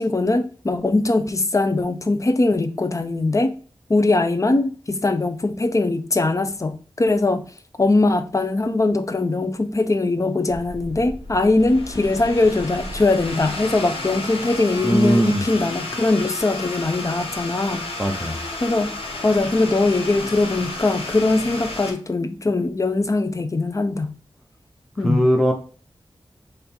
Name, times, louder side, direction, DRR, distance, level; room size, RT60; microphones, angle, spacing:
voice 1, 0.0-3.5 3.9-7.4 7.8-17.8 18.6-18.9 19.2-24.1 25.0-25.3, left 2 dB, 35° left, 0.6 m, -21 dB
sound 1, 10.5-21.9, left 2 dB, 80° left, 1.4 m, -32 dB
voice 2, 14.8-15.4 18.0-18.4 25.0-25.5, right 1 dB, 5° right, 0.9 m, -19 dB
3.7 x 3.3 x 4.3 m
wide cardioid pair, 85°, 10 cm